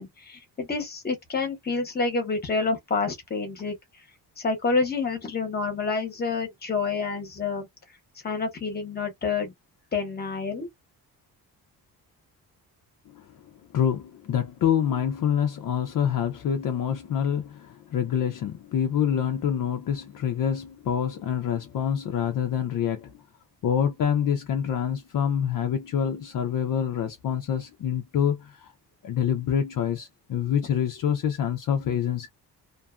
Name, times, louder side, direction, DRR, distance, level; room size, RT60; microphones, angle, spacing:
voice 1, 0.0-3.8 4.4-7.7 8.2-9.5 9.9-10.7, left 4 dB, 25° left, 0.9 m, -28 dB
voice 2, 13.1-13.5 13.7-23.2 23.6-28.7 29.0-32.3, left 8 dB, 55° left, 0.5 m, -26 dB
2.6 x 2.3 x 2.4 m
wide cardioid pair, 175°, 40 cm